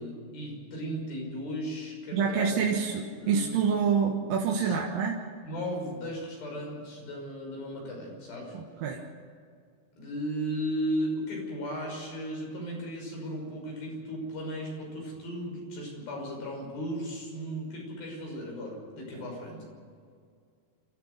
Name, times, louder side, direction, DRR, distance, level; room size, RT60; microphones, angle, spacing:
voice 1, 0.0-2.7 3.2-3.5 4.5-4.8 5.4-8.6 10.0-19.6, equal, 85° left, 0 dB, 7.7 m, -36 dB
voice 2, 2.1-5.2 8.5-9.0, right 6 dB, 75° right, -1 dB, 3.2 m, -27 dB
29.0 x 14.0 x 6.7 m, 2.2 s
omnidirectional pair, 4.1 m